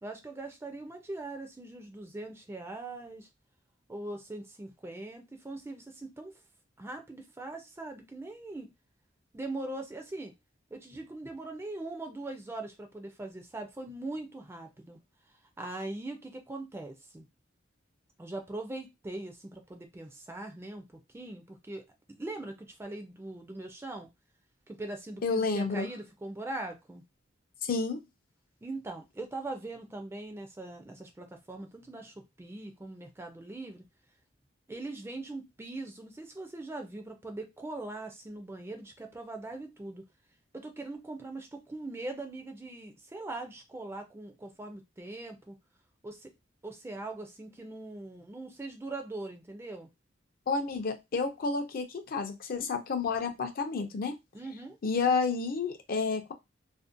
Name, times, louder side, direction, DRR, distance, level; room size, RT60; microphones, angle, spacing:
voice 1, 0.0-3.3 3.9-6.3 6.8-8.7 9.3-10.3 10.7-15.0 15.6-17.3 18.2-20.8 21.1-24.1 24.7-27.0 28.6-33.8 34.7-40.0 40.5-45.6 46.0-46.3 46.6-49.9 54.3-54.8, right 2 dB, 15° right, 0.3 m, -41 dB
voice 2, 25.2-25.9 27.7-28.0 50.5-54.1 54.8-56.3, left 4 dB, 50° left, 0.4 m, -30 dB
2.6 x 2.1 x 2.5 m
head